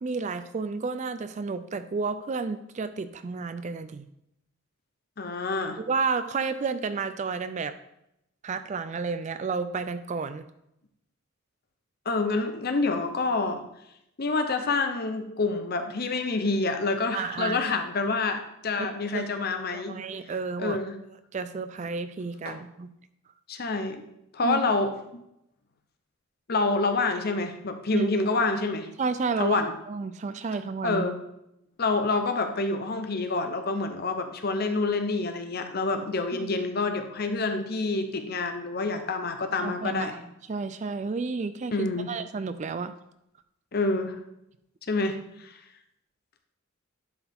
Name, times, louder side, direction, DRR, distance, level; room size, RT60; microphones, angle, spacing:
voice 1, 0.0-4.1 5.8-7.8 8.4-10.5 17.1-17.6 19.1-19.2 19.7-20.8 21.3-22.9 24.4-24.6 27.9-28.1 29.0-31.0 36.3-36.6 39.6-40.2 40.5-42.9, right 4 dB, 35° right, 12 dB, 0.3 m, -31 dB
voice 2, 5.2-5.8 12.1-13.6 14.2-20.0 20.6-20.9 22.4-22.6 23.5-24.0 24.3-25.2 26.5-28.9 29.4-29.7 30.8-31.2 31.8-40.1 41.7-42.1 43.7-44.1 44.9-45.5, left 3 dB, 45° left, 7 dB, 0.7 m, -27 dB
10.5 x 4.8 x 3.5 m, 0.81 s
head